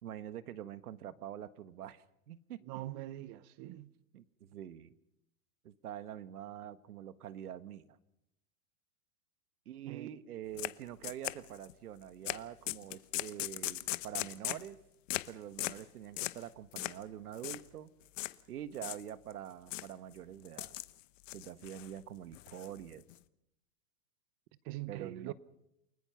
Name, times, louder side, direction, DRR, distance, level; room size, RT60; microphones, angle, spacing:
voice 1, 0.0-2.6 3.7-3.8 4.1-4.9 5.6-8.0 9.6-14.8 15.3-17.9 18.5-20.8 21.3-23.0 24.9-25.3, right 10 dB, 90° right, 1.5 m, -45 dB
voice 2, 2.7-3.9 9.8-10.2 24.6-25.3, right 16 dB, 35° right, 0.8 m, -43 dB
sound 1, 10.6-10.7 11.0-11.7 12.2-12.4 12.7-14.7 15.1-15.3 15.6-15.8 16.2-16.4 16.8-17.0 17.3-17.6 18.2-18.3 18.7-19.3 19.7-19.9 20.4-20.9 21.2-21.9 22.3-23.1, left 17 dB, 60° left, 1.0 m, -38 dB
29.0 x 19.0 x 5.8 m
supercardioid pair, 145°, 43 cm